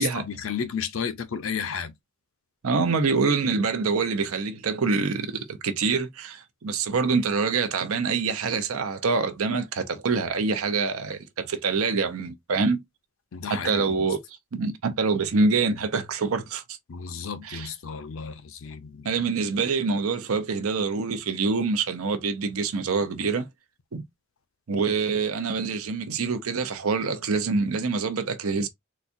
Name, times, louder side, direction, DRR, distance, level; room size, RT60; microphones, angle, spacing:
voice 1, 0.0-1.9 13.3-13.9 16.9-19.1, left 6 dB, 75° left, 0.5 m, -32 dB
voice 2, 2.6-12.8 13.5-14.2 14.5-16.8 17.4-17.7 19.0-23.5 23.9-24.0 24.7-28.7, right 4 dB, 90° right, 0.6 m, -25 dB
4.0 x 2.3 x 2.5 m
head